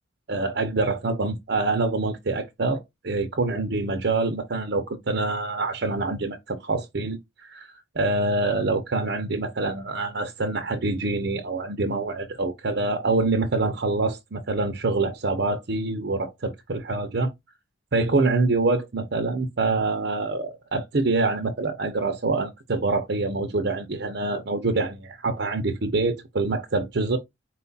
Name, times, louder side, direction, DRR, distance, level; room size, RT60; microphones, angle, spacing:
voice 1, 0.3-17.3 17.9-27.2, right 3 dB, 50° right, 0.6 m, -25 dB
4.4 x 2.3 x 3.9 m
head